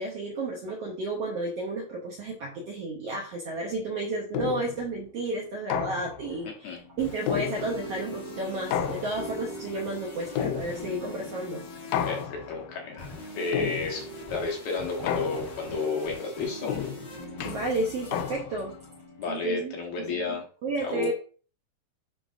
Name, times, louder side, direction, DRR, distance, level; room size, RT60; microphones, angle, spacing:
voice 1, 0.0-11.6 17.4-18.7 19.3-21.1, right 2 dB, 70° right, -1 dB, 1.5 m, -32 dB
sound 1, 4.3-4.9 5.7-6.4 7.3-8.0 8.7-9.5 10.4-11.1 11.9-12.7 13.5-14.2 15.1-15.8 16.7-18.7, left 9 dB, 85° left, 2.4 m, -32 dB
sound 2, 6.8-19.6, equal, 40° left, 2.1 m, -41 dB
voice 2, 12.1-16.8 19.2-20.5 20.8-21.1, left 4 dB, 65° left, 0 dB, 2.3 m, -32 dB
10.5 x 3.9 x 2.5 m, 0.40 s
omnidirectional pair, 4.0 m